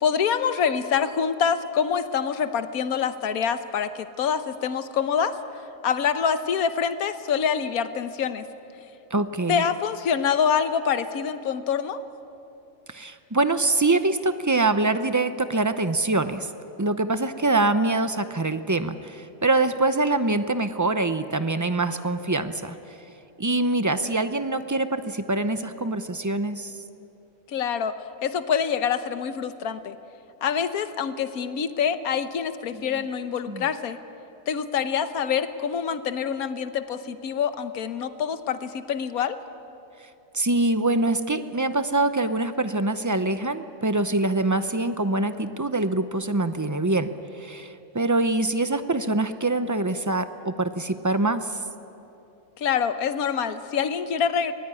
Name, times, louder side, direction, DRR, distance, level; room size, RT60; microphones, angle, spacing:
voice 1, 0.0-5.3 5.8-8.4 9.5-12.0 27.5-28.0 28.2-30.0 30.4-34.0 34.5-39.4 52.6-54.5, left 7 dB, 70° left, 10 dB, 1.4 m, -26 dB
voice 2, 9.1-9.6 12.9-16.5 16.8-22.8 23.4-26.7 32.7-33.1 33.5-33.7 40.3-51.6, right 2 dB, 30° right, 10 dB, 0.3 m, -24 dB
24.0 x 19.5 x 9.9 m, 2.8 s
omnidirectional pair, 1.6 m